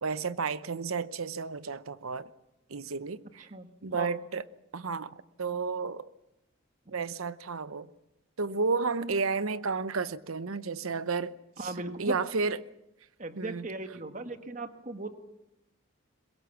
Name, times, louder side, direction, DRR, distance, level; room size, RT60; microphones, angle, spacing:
voice 1, 0.0-2.3 2.7-3.5 3.8-4.4 4.7-6.1 6.9-7.9 8.4-11.3 11.6-11.7 12.0-12.6 13.4-13.7, right 4 dB, 85° right, 0.8 m, -32 dB
voice 2, 3.4-4.2 6.9-7.0 11.6-12.2 13.2-15.1, right 2 dB, 35° right, 1.4 m, -38 dB
22.5 x 21.5 x 7.1 m
head